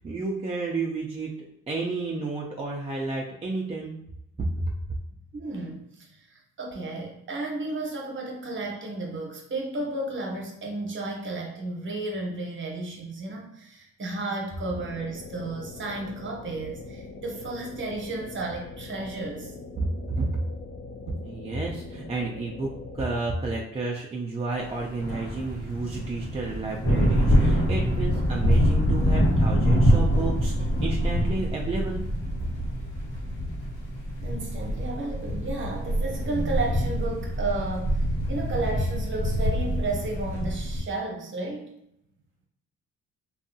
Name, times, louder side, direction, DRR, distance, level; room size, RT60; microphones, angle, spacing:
voice 1, 0.0-1.3 1.7-3.9 4.4-4.7 20.1-20.3 21.2-32.0, right 3 dB, 20° right, -2 dB, 0.4 m, -31 dB
voice 2, 5.3-19.5 34.2-41.8, right 2 dB, 40° right, 0 dB, 0.8 m, -33 dB
sound 1, 14.7-23.1, left 3 dB, 50° left, 0.5 m, -42 dB
sound 2, 24.8-40.8, equal, 85° left, 1.0 m, -25 dB
2.6 x 2.3 x 2.6 m, 0.78 s
cardioid pair, 90°, 30 cm